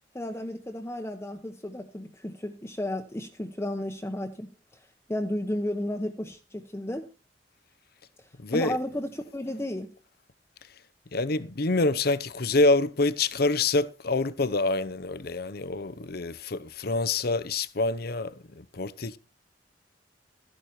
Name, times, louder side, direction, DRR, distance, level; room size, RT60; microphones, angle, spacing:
voice 1, 0.1-4.8 5.1-7.1 8.2-8.3 8.5-9.9, left 1 dB, 15° left, 1.0 m, -33 dB
voice 2, 8.4-8.8 11.1-19.2, left 2 dB, 55° left, 0.8 m, -26 dB
13.5 x 11.5 x 4.3 m
head